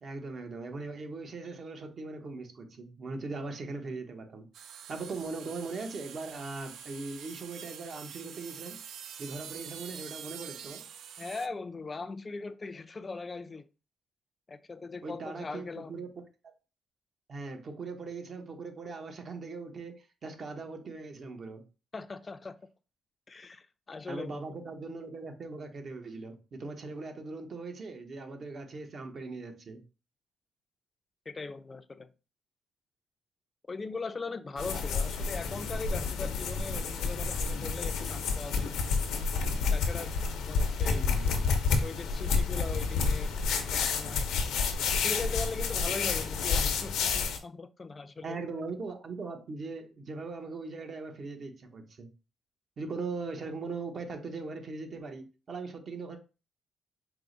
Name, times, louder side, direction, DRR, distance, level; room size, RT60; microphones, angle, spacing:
voice 1, 0.0-4.5 4.9-8.8 9.2-10.9 15.0-16.1 17.3-21.6 24.1-29.8 40.8-41.5 48.2-52.1 52.8-56.2, right 3 dB, 50° right, 0.9 m, -40 dB
sound 1, 4.5-11.5, right 8 dB, 70° right, 0.3 m, -46 dB
voice 2, 11.2-13.6 14.5-16.0 21.9-22.5 23.3-24.4 31.3-32.1 33.7-38.7 39.7-40.1 40.4-41.0 41.8-43.7 44.0-44.2 45.0-48.4, left 4 dB, 30° left, 0.4 m, -40 dB
sound 2, 34.6-47.4, left 5 dB, 85° left, 0.7 m, -29 dB
4.7 x 2.1 x 3.8 m
cardioid pair, 90°, 0 cm